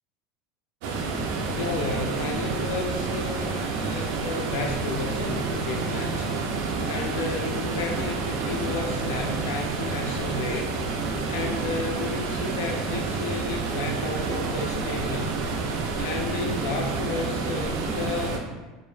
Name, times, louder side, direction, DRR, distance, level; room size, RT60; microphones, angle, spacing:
sound 1, 0.8-18.4, right 4 dB, 70° right, 0.3 m, -29 dB
voice 1, 1.4-15.5 16.0-18.4, left 3 dB, 80° left, 2 dB, 0.3 m, -33 dB
2.0 x 2.0 x 3.0 m, 1.2 s
supercardioid pair, 145°, 0 cm